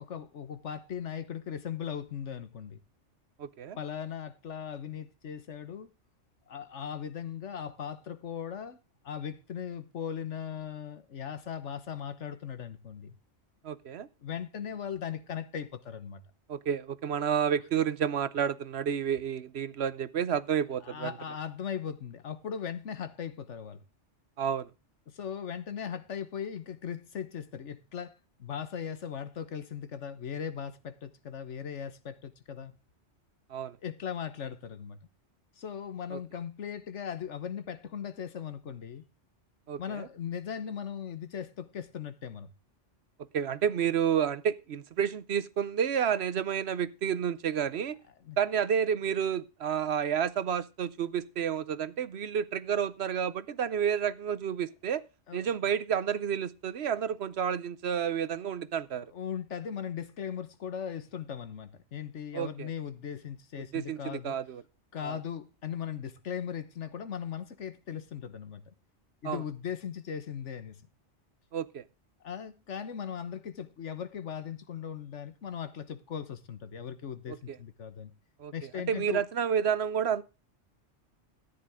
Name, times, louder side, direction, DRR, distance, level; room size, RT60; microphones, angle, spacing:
voice 1, 0.0-2.8 3.8-5.9 6.5-8.8 9.0-13.2 14.2-16.2 20.8-23.8 25.1-32.8 33.8-35.0 35.6-39.0 39.8-42.5 48.2-48.4 55.3-55.4 59.1-64.3 64.9-68.7 69.2-70.8 72.2-78.1 78.5-79.2, left 8 dB, 80° left, 1.5 m, -38 dB
voice 2, 3.4-3.8 13.6-14.1 16.5-21.1 24.4-24.7 33.5-33.8 36.1-36.2 39.7-40.1 43.3-48.0 48.4-55.0 55.3-59.1 62.3-62.7 63.7-64.6 65.0-65.2 69.2-69.4 71.5-71.8 77.3-77.6 78.4-78.5 78.9-80.2, right 8 dB, 65° right, 1.0 m, -30 dB
13.5 x 9.9 x 3.6 m
omnidirectional pair, 1.2 m